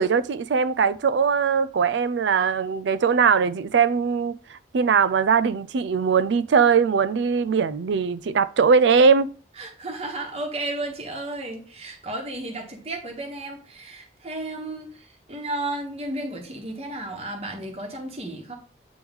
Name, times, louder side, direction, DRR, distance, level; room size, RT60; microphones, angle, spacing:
voice 1, 0.0-9.3, right 6 dB, 80° right, 0.4 m, -20 dB
voice 2, 9.6-18.5, right 2 dB, 35° right, 1.1 m, -33 dB
8.7 x 3.1 x 3.5 m
head